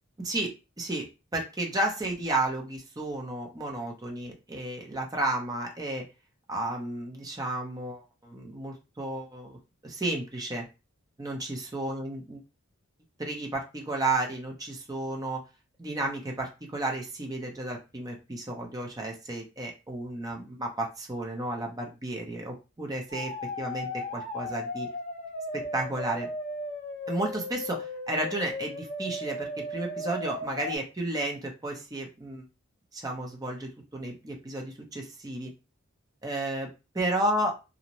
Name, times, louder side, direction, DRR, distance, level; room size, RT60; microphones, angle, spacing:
voice 1, 0.2-0.5 0.8-1.1 1.3-6.1 6.5-9.6 9.8-10.6 11.2-12.4 13.2-15.4 15.8-23.3 23.6-24.9 25.5-26.3 27.1-32.4 32.9-35.5 36.2-36.7 36.9-37.5, right 2 dB, 15° right, 0 dB, 0.6 m, -32 dB
sound 1, 23.1-30.8, left 1 dB, 35° left, 0.6 m, -36 dB
2.5 x 2.0 x 2.9 m, 0.29 s
head